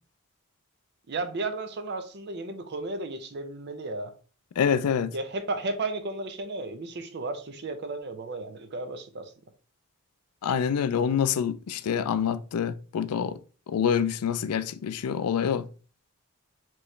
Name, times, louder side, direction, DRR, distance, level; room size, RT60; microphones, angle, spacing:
voice 1, 1.1-4.1 5.1-9.3, right 2 dB, 50° right, 0.6 m, -34 dB
voice 2, 4.6-5.1 10.4-13.4 13.7-15.7, left 7 dB, 90° left, 0.4 m, -26 dB
4.6 x 3.0 x 3.2 m
head